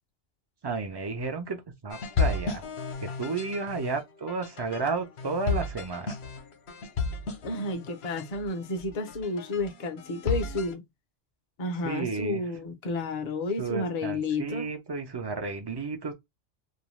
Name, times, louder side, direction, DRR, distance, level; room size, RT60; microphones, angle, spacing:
voice 1, 0.6-2.6 3.0-6.2 11.8-12.4 13.6-16.1, right 4 dB, 35° right, 0.4 m, -32 dB
sound 1, 1.9-10.7, left 4 dB, 70° left, 1.0 m, -33 dB
voice 2, 7.4-10.8 11.6-14.7, left 2 dB, 45° left, 0.6 m, -31 dB
2.6 x 2.1 x 3.1 m
omnidirectional pair, 1.1 m